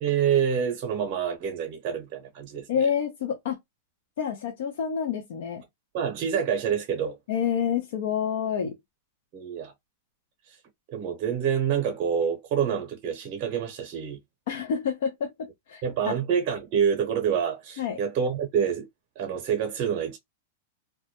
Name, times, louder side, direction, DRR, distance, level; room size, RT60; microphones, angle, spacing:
voice 1, 0.0-2.7 5.9-7.2 9.3-9.7 10.9-14.2 15.8-18.9 19.2-20.2, right 7 dB, 40° right, 0.7 m, -27 dB
voice 2, 2.7-3.6 4.2-5.6 7.3-8.8 14.5-16.1 17.8-18.0, left 7 dB, 65° left, 0.5 m, -28 dB
2.2 x 2.1 x 2.8 m
supercardioid pair, 145°, 0 cm